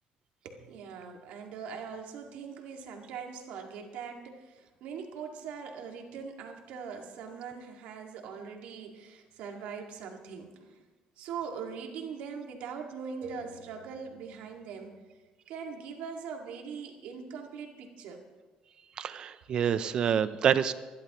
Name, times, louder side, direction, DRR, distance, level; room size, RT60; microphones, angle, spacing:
voice 1, 0.4-10.8 11.2-15.0 15.5-18.2 19.9-20.0, right 6 dB, 70° right, 2 dB, 2.0 m, -41 dB
voice 2, 19.0-20.7, right 8 dB, 40° right, 13 dB, 0.6 m, -27 dB
24.5 x 11.5 x 3.1 m, 1.3 s
cardioid pair, 170°, 2 cm